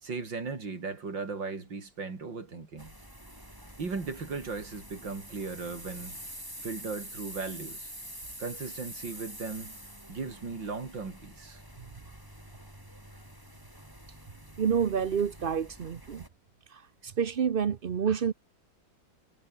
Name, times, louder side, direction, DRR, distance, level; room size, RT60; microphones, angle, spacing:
voice 1, 0.0-2.9 3.8-6.2 6.6-7.9 8.4-9.8 10.1-11.6, right 4 dB, 65° right, 4.4 m, -37 dB
sound 1, 2.8-16.3, right 1 dB, 10° right, 6.1 m, -46 dB
voice 2, 14.6-16.2 16.7-18.3, right 7 dB, 90° right, 0.4 m, -28 dB
omnidirectional pair, 2.2 m